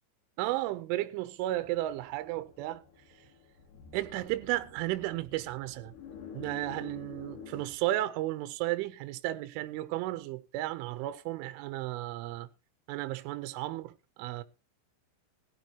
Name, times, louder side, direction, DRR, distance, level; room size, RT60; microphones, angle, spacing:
voice 1, 0.4-2.8 3.9-5.9 6.3-12.5 12.9-14.4, right 16 dB, 80° right, 3.2 m, -34 dB
sound 1, 1.5-7.7, left 7 dB, 60° left, 3.7 m, -50 dB
16.5 x 13.0 x 2.9 m
omnidirectional pair, 5.8 m